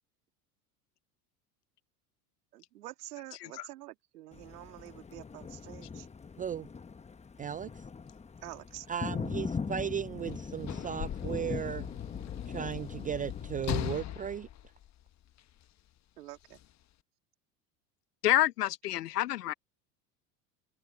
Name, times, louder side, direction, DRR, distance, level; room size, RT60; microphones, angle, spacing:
voice 1, 2.5-6.1 8.4-8.9 16.2-16.6, right 15 dB, 80° right, 2.7 m, -47 dB
Thunder, 4.3-14.0, left 5 dB, 15° left, 1.1 m, -41 dB
voice 2, 6.4-6.7 7.4-7.8 8.9-11.9 12.5-14.5, right 8 dB, 20° right, 0.3 m, -36 dB
Sliding door / Slam, 10.2-15.6 16.5-16.7, left 12 dB, 35° left, 1.4 m, -39 dB
voice 3, 18.2-19.5, left 15 dB, 85° left, 0.9 m, -28 dB
open air
hypercardioid pair, 90°, 46 cm